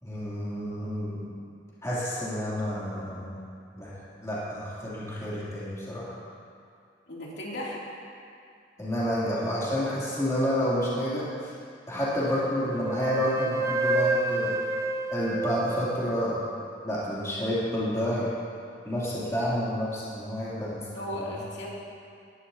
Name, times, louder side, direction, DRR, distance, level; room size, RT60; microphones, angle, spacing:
voice 1, 0.0-1.3 1.8-3.3 3.8-3.9 4.2-6.1 8.8-11.5 11.9-14.6 15.1-16.4 16.8-18.3 18.8-20.9 21.2-21.3, equal, 15° left, -9 dB, 3.0 m, -29 dB
voice 2, 7.1-7.8 20.9-21.7, left 1 dB, 65° left, -5 dB, 2.8 m, -35 dB
Wind instrument woodwind instrument, 12.2-16.4, right 2 dB, 15° right, 0.6 m, -29 dB
19.0 x 11.5 x 2.8 m, 2.4 s
head